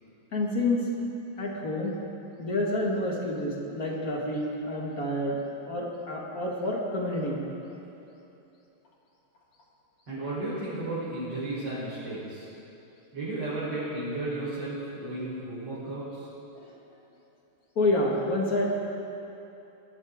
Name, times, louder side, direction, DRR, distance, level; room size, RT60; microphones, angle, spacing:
voice 1, 0.3-0.9 1.4-2.0 2.4-5.4 5.7-7.4 16.6-16.7 17.8-18.7, left 1 dB, 45° left, -2 dB, 2.3 m, -28 dB
voice 2, 10.1-12.5 13.1-16.3, right 2 dB, 60° right, -12 dB, 4.9 m, -34 dB
20.5 x 12.0 x 3.7 m, 3.0 s
omnidirectional pair, 2.2 m